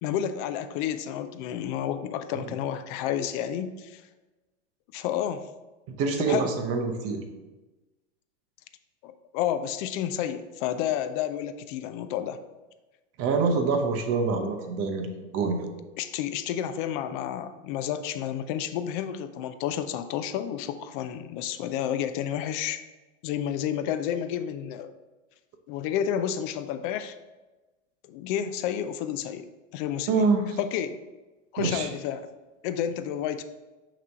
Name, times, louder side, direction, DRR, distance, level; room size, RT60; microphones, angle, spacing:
voice 1, 0.0-4.0 4.9-5.5 6.2-6.5 9.0-12.4 16.0-22.8 23.2-24.9 25.7-27.1 28.1-29.4 29.7-30.3 30.6-31.0 31.5-32.3 32.6-33.4, left 10 dB, 40° left, 10 dB, 0.4 m, -30 dB
voice 2, 6.0-7.2 13.2-15.1 15.3-15.7 30.1-30.6 31.6-31.9, right 4 dB, 35° right, 4 dB, 0.9 m, -25 dB
6.0 x 3.1 x 5.5 m, 1.2 s
hypercardioid pair, 120°, 39 cm